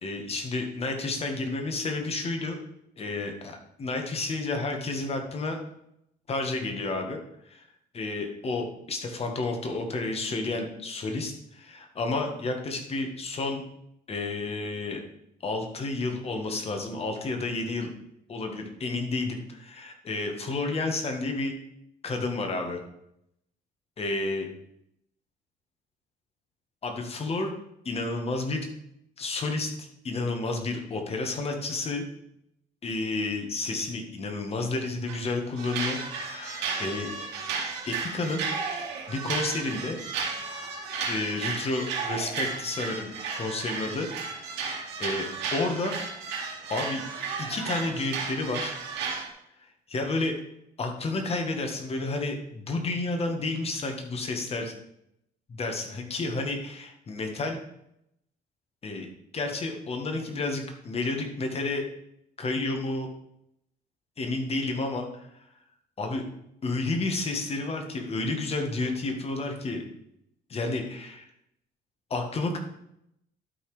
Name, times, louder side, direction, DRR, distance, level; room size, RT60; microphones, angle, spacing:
voice 1, 0.0-2.6 3.0-5.6 6.3-7.2 7.5-7.6 7.9-13.6 14.1-15.0 15.4-17.9 18.3-21.5 22.0-22.8 24.0-24.5 26.8-27.5 27.9-28.7 29.2-32.1 32.8-37.1 37.9-38.4 39.1-40.0 41.1-44.7 45.0-46.0 46.7-47.0 47.4-48.8 49.9-50.3 50.8-54.7 55.5-57.6 58.8-59.1 59.3-61.8 62.4-63.1 64.2-65.3 66.0-66.2 66.6-69.8 70.5-71.3 72.1-72.6, left 3 dB, 35° left, 3 dB, 1.9 m, -31 dB
sound 1, 35.1-35.3 35.6-49.3, right 5 dB, 85° right, 2.4 m, -33 dB
12.0 x 4.3 x 5.2 m, 0.77 s
cardioid pair, 110°, 17 cm